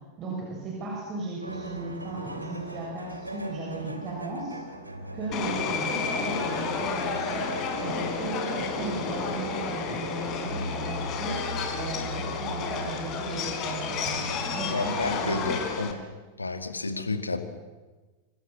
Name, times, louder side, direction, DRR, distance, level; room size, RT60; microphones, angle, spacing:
voice 1, 0.2-4.6 5.1-11.4 11.8-15.4, right 2 dB, 30° right, -1 dB, 7.4 m, -36 dB
sound 1, 1.4-15.6, equal, 85° right, 2.9 m, -40 dB
Subway metro underground, 5.3-15.9, left 5 dB, 35° left, 4.5 m, -31 dB
voice 2, 14.7-16.0 16.4-17.4, left 3 dB, 80° left, 8 dB, 2.5 m, -30 dB
27.5 x 25.5 x 7.7 m, 1.3 s
figure-of-eight pair, 90°, 0 cm